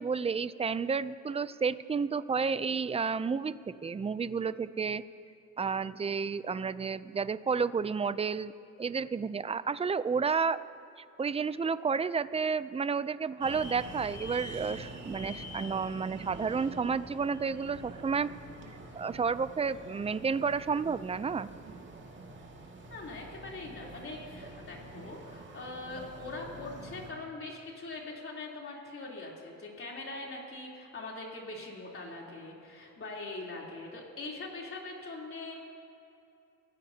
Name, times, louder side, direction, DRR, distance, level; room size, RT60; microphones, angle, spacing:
voice 1, 0.0-5.0 5.6-8.5 8.8-10.6 11.2-18.3 18.9-21.5, right 5 dB, 20° right, 15 dB, 0.5 m, -31 dB
sound 1, 13.4-27.1, right 1 dB, 40° right, 2.1 m, -46 dB
voice 2, 22.9-35.5, left 2 dB, 45° left, -2 dB, 3.5 m, -42 dB
29.0 x 16.0 x 2.9 m, 2.7 s
cardioid pair, 90°, 30 cm